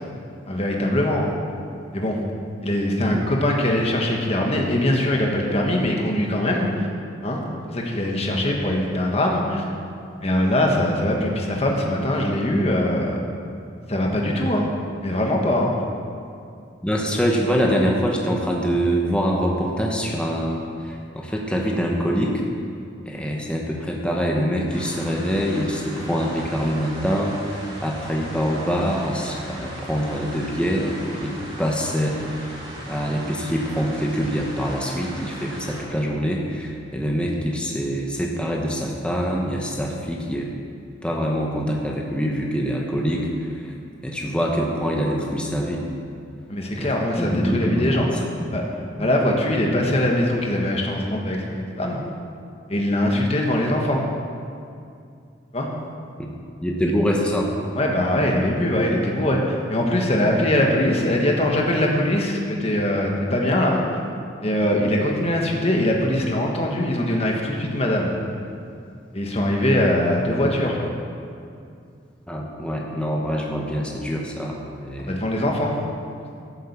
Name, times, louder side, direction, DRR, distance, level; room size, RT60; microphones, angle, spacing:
voice 1, 0.5-1.3 1.9-2.2 2.6-6.9 7.2-7.4 7.7-9.6 10.2-13.2 13.9-14.7 15.0-15.7 46.5-48.1 48.5-48.7 49.0-52.0 52.7-54.0 55.5-55.7 57.7-64.0 64.4-68.1 69.1-70.9 75.1-75.8, left 1 dB, 35° left, 0 dB, 1.5 m, -22 dB
voice 2, 16.8-22.4 23.1-32.5 32.9-40.5 41.0-43.7 44.0-45.8 46.7-48.1 48.4-48.5 49.0-49.1 56.2-56.3 56.6-57.5 72.3-75.2, equal, 5° left, -1 dB, 1.1 m, -25 dB
sound 1, 24.7-35.8, right 1 dB, 25° right, 2.6 m, -37 dB
11.5 x 7.4 x 7.3 m, 2.4 s
head